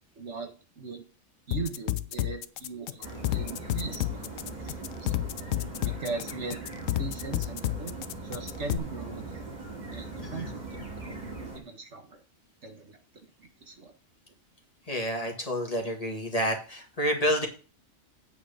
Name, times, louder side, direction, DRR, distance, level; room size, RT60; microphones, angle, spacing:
voice 1, 0.2-1.0 1.5-5.1 5.8-6.6 7.0-7.9 8.2-9.6 9.9-12.2 12.6-13.0 13.4-13.9, right 4 dB, 60° right, 4 dB, 1.8 m, -39 dB
sound 1, 1.5-8.8, left 14 dB, 80° left, 1.0 m, -30 dB
sound 2, 3.0-11.6, right 3 dB, 35° right, 2.8 m, -40 dB
voice 2, 10.2-10.5 14.9-17.5, equal, 30° left, 1 dB, 2.0 m, -29 dB
8.7 x 4.9 x 6.9 m, 0.36 s
omnidirectional pair, 1.3 m